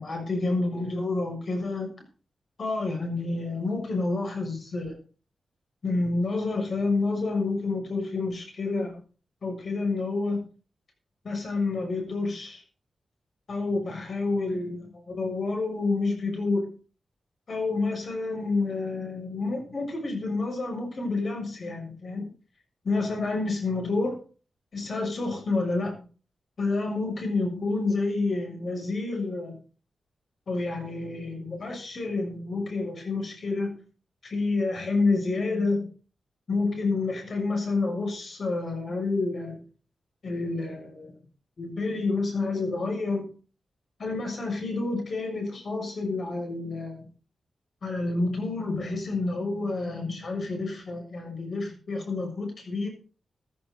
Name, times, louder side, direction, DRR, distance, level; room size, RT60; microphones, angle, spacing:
voice 1, 0.0-1.9 2.6-4.9 5.8-9.0 9.4-10.4 11.2-12.6 13.5-16.7 17.5-22.3 22.8-24.2 24.7-26.0 26.6-29.6 30.5-33.8 34.2-35.9 36.5-39.6 40.2-41.2 41.6-43.3 44.0-47.1 47.8-52.9, left 3 dB, 50° left, 3 dB, 6.7 m, -29 dB
15.0 x 13.0 x 3.9 m, 0.37 s
wide cardioid pair, 140°, 0 cm